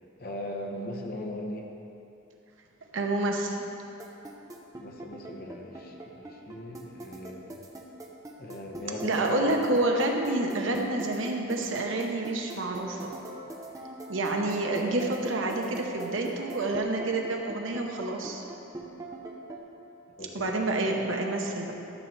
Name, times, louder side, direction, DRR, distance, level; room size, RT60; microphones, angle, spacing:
voice 1, 0.2-1.7 4.8-7.6 8.4-9.6 16.4-16.5 20.2-20.9 21.6-21.7, left 1 dB, 50° left, 1 dB, 0.9 m, -39 dB
voice 2, 2.9-3.6 9.0-13.1 14.1-18.4 20.3-21.7, right 2 dB, 75° right, 1 dB, 1.0 m, -28 dB
sound 1, 4.0-19.6, right 2 dB, 15° right, 0.7 m, -42 dB
13.0 x 7.3 x 3.3 m, 2.8 s
head